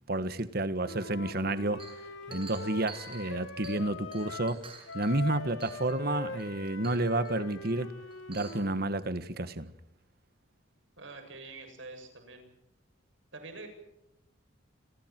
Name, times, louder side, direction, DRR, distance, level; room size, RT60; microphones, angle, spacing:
voice 1, 0.1-1.9 2.3-4.7 4.9-7.9 8.3-9.7, right 2 dB, 50° right, 1.5 m, -30 dB
Wind instrument woodwind instrument, 0.8-4.6 4.9-8.9, left 4 dB, 85° left, 2.8 m, -42 dB
Chink clink, 1.8-3.9 4.1-5.1 5.6-6.0 6.4-6.5 6.8-7.3 8.1-8.7, right 5 dB, 25° right, 7.8 m, -49 dB
voice 2, 11.0-12.5 13.3-13.7, right 3 dB, 70° right, 7.7 m, -46 dB
29.5 x 26.0 x 4.6 m
head